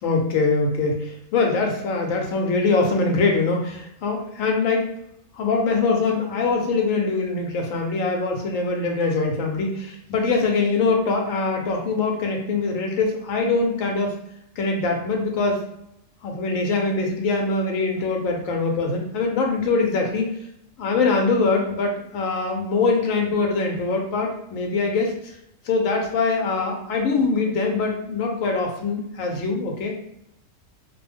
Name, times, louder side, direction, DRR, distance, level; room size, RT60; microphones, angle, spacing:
voice 1, 0.0-4.9 5.3-14.1 14.6-15.6 16.2-20.3 20.8-25.3 25.6-30.0, left 3 dB, 90° left, 2 dB, 1.0 m, -23 dB
2.5 x 2.1 x 3.3 m, 0.78 s
omnidirectional pair, 1.4 m